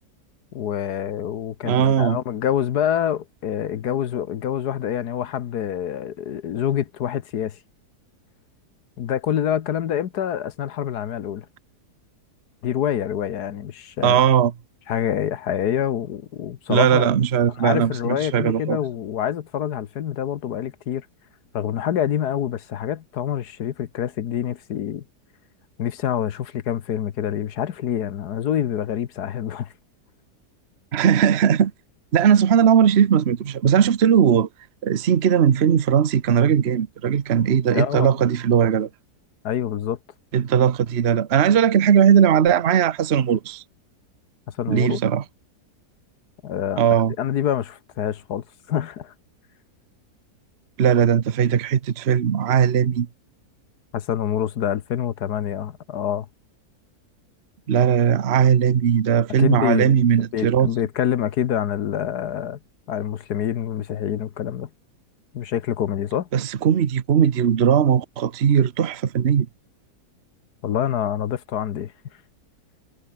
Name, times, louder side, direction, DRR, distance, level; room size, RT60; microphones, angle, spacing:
voice 1, 0.5-7.6 9.0-11.5 12.6-14.2 14.9-17.1 17.5-21.1 21.5-25.0 25.8-29.7 37.7-38.1 39.4-40.0 44.6-45.0 46.4-46.8 47.2-49.1 53.9-56.3 59.4-60.0 60.3-62.6 62.9-64.7 65.3-66.3 70.6-71.9, left 10 dB, 75° left, 1.6 m, -26 dB
voice 2, 1.6-2.2 14.0-14.5 16.7-18.8 30.9-31.7 32.1-34.5 34.8-38.9 40.3-43.6 44.7-45.2 46.8-47.1 50.8-53.1 57.7-60.7 66.3-69.5, right 8 dB, 45° right, 1.1 m, -18 dB
omnidirectional pair, 1.7 m